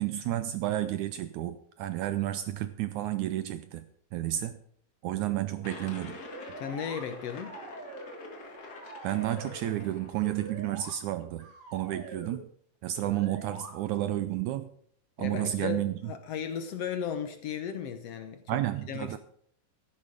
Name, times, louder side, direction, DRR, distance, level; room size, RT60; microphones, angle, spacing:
voice 1, 0.0-3.8 4.1-4.6 5.0-6.2 9.0-12.5 12.8-14.7 15.2-16.1 18.5-19.2, right 14 dB, 85° right, 12 dB, 1.7 m, -31 dB
sound 1, 5.6-10.6, left 2 dB, 40° left, 1.6 m, -46 dB
sound 2, 6.0-7.1 7.4-8.3 8.6-9.7 10.1-10.9 11.4-12.4 12.9-13.7, right 2 dB, 50° right, 4.0 m, -45 dB
voice 2, 6.6-7.6 15.2-18.6 18.9-19.2, left 8 dB, 75° left, 8 dB, 1.4 m, -35 dB
13.5 x 11.0 x 5.0 m, 0.62 s
omnidirectional pair, 4.1 m